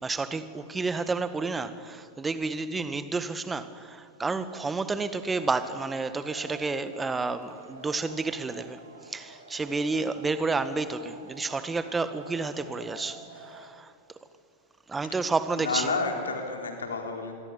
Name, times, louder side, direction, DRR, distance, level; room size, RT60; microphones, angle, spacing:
voice 1, 0.0-8.8 9.1-13.9 14.9-15.9, right 3 dB, 15° right, 1.8 m, -30 dB
Male speech man speaking / Shout / Clapping, 5.2-13.6, right 2 dB, 80° right, 6.3 m, -48 dB
voice 2, 15.5-17.3, left 4 dB, 70° left, 4.0 m, -31 dB
26.0 x 23.0 x 10.0 m
figure-of-eight pair, 90°, 0 cm